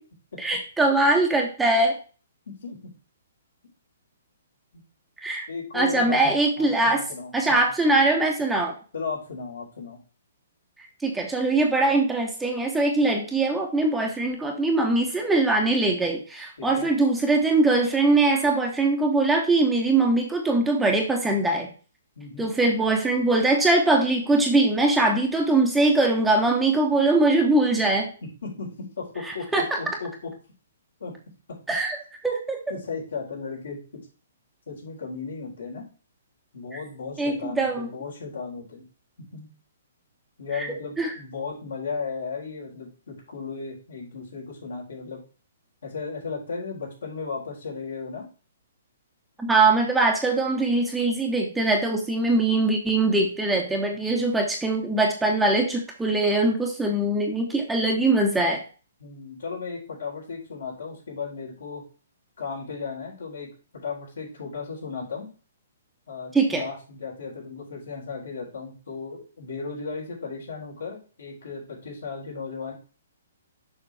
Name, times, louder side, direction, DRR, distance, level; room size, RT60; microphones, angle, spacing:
voice 1, 0.4-1.9 5.2-5.5 5.7-7.0 7.3-8.7 11.0-21.7 22.4-28.1 29.3-29.8 31.7-32.0 32.2-32.6 36.7-36.8 37.2-37.9 40.5-40.7 41.0-41.1 49.4-58.6 66.3-66.6, right 2 dB, 5° right, 1 dB, 1.2 m, -22 dB
voice 2, 2.5-2.9 5.5-6.2 6.6-7.7 8.9-10.0 16.6-16.9 22.2-22.5 28.2-30.3 31.0-31.1 32.7-34.0 34.7-35.8 36.5-38.8 39.3-39.5 40.4-45.2 45.8-48.3 59.0-61.8 62.4-63.5 63.8-65.3 66.1-72.7, left 5 dB, 70° left, -2 dB, 3.9 m, -35 dB
6.9 x 5.8 x 3.4 m, 0.37 s
figure-of-eight pair, 125°, 0 cm